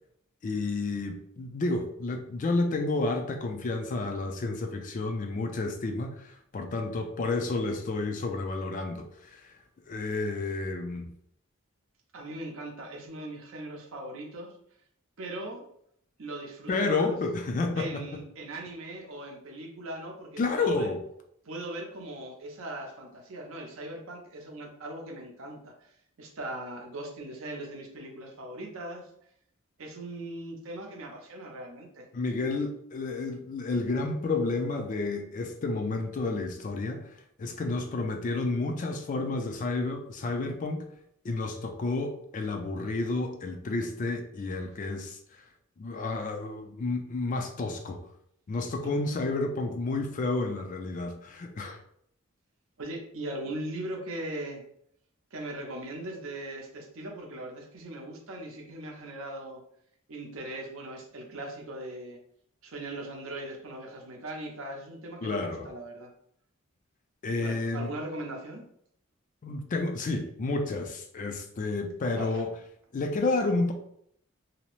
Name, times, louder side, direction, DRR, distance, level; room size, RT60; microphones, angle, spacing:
voice 1, 0.4-9.5 9.9-11.1 16.7-18.0 20.4-21.0 32.1-37.1 37.4-40.8 41.2-45.2 45.8-48.0 48.5-51.8 65.2-65.7 67.2-67.9 69.4-72.5 72.9-73.7, left 3 dB, 35° left, 5 dB, 0.3 m, -30 dB
voice 2, 12.1-14.6 15.2-15.6 16.2-17.2 17.8-20.9 21.4-29.1 29.8-32.1 37.4-37.5 48.8-48.9 52.8-54.6 55.3-59.6 60.1-62.2 62.6-66.1 67.4-68.7 72.1-72.4, right 1 dB, 65° right, 1 dB, 0.6 m, -39 dB
2.7 x 2.0 x 2.9 m, 0.70 s
head